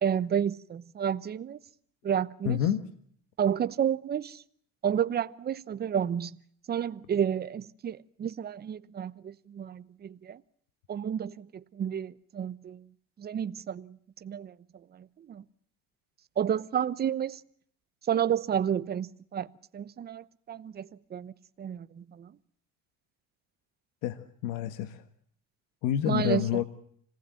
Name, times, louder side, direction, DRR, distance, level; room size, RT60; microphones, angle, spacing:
voice 1, 0.0-1.6 2.0-2.6 3.4-4.4 4.8-6.4 6.7-10.4 10.9-12.9 13.2-14.5 14.9-15.4 16.4-17.4 18.0-19.5 19.7-21.3 21.6-22.4 26.1-26.6, right 9 dB, 30° right, 0.9 m, -31 dB
voice 2, 2.4-2.8 24.0-25.0 25.8-26.6, left 11 dB, 85° left, 1.6 m, -28 dB
26.5 x 19.0 x 7.7 m
cardioid pair, 125°, 31 cm